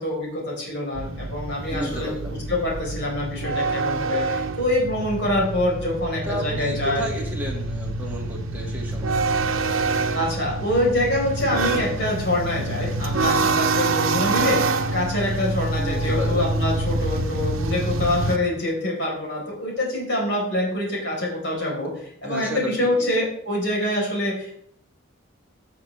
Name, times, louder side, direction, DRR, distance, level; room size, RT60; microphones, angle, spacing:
voice 1, 0.0-2.1 2.5-7.1 10.1-24.6, left 1 dB, 55° left, -2 dB, 4.8 m, -25 dB
sound 1, 1.0-18.4, right 3 dB, 75° right, 0.9 m, -26 dB
voice 2, 1.7-2.4 6.3-9.2 15.8-16.6 22.2-23.1, equal, 10° right, -3 dB, 2.3 m, -33 dB
15.5 x 7.5 x 3.5 m, 0.67 s
head